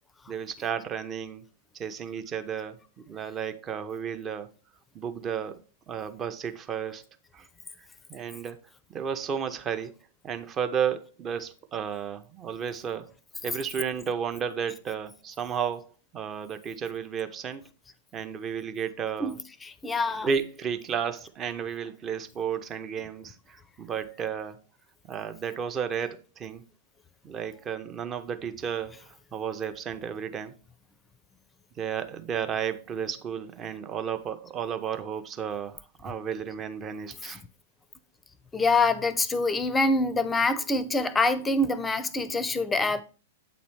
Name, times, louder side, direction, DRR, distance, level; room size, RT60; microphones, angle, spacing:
voice 1, 0.3-1.4 1.8-4.5 4.9-5.6 5.9-7.0 7.3-7.5 8.1-8.6 8.9-9.9 10.2-13.1 13.4-17.7 18.1-19.4 20.2-24.6 25.1-26.6 27.2-30.6 31.8-37.4, right 7 dB, 25° right, 0.6 m, -33 dB
voice 2, 19.6-20.3 38.5-43.0, left 2 dB, 15° left, 0.5 m, -25 dB
8.2 x 3.1 x 4.4 m
figure-of-eight pair, 105°, 0 cm